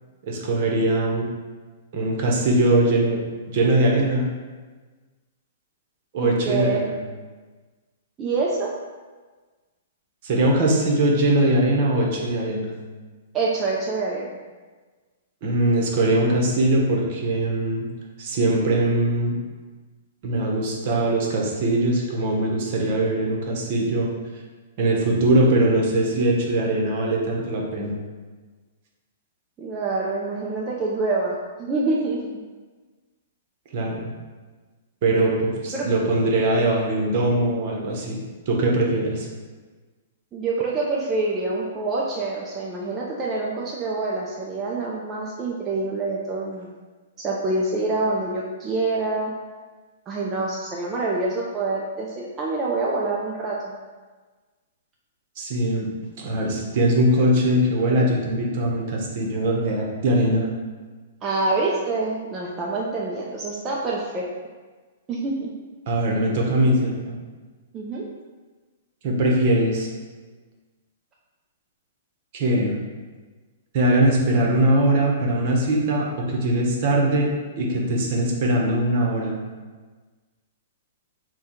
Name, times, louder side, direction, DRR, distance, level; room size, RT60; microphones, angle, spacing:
voice 1, 0.2-1.3 1.9-3.2 3.5-4.3 6.1-6.9 10.2-12.7 15.4-17.8 18.2-19.3 20.2-24.1 24.8-28.0 33.7-34.1 35.0-38.2 38.5-39.3 55.4-55.9 56.2-60.5 65.9-67.2 69.0-69.9 72.3-72.8 73.7-77.3 77.6-79.4, right 1 dB, 50° right, -1 dB, 0.9 m, -21 dB
voice 2, 6.2-6.8 8.2-8.7 13.3-14.4 29.6-32.2 35.7-35.9 40.3-46.7 47.2-49.3 50.1-53.7 61.2-64.3 65.1-65.5 67.7-68.1, right 3 dB, 25° right, -4 dB, 0.5 m, -26 dB
3.5 x 2.3 x 4.3 m, 1.4 s
hypercardioid pair, 115°, 0 cm